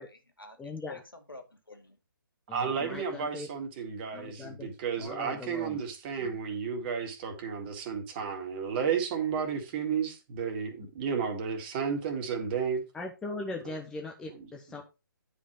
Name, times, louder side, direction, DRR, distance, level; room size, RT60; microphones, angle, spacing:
voice 1, 0.0-2.0 2.8-2.9, left 3 dB, 85° left, 2.2 m, -49 dB
voice 2, 0.6-1.0 2.5-3.5 4.1-4.7 5.0-5.8 6.2-6.4 12.9-14.8, left 3 dB, 5° left, 0.9 m, -40 dB
voice 3, 2.5-12.8 14.3-14.5, right 6 dB, 30° right, 2.1 m, -32 dB
9.9 x 5.1 x 4.5 m
figure-of-eight pair, 135°, 12 cm